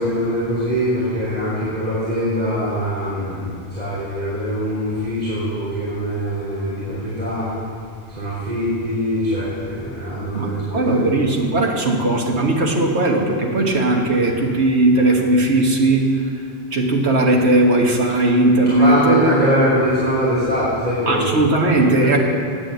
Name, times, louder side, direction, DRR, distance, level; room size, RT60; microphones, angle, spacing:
voice 1, 0.0-7.5 8.1-11.0 18.6-21.3 22.0-22.2, equal, 40° right, -11 dB, 3.4 m, -22 dB
voice 2, 10.3-16.1 16.7-19.3 21.1-22.2, right 2 dB, 90° right, 0 dB, 1.6 m, -17 dB
9.7 x 8.5 x 7.9 m, 2.3 s
omnidirectional pair, 1.1 m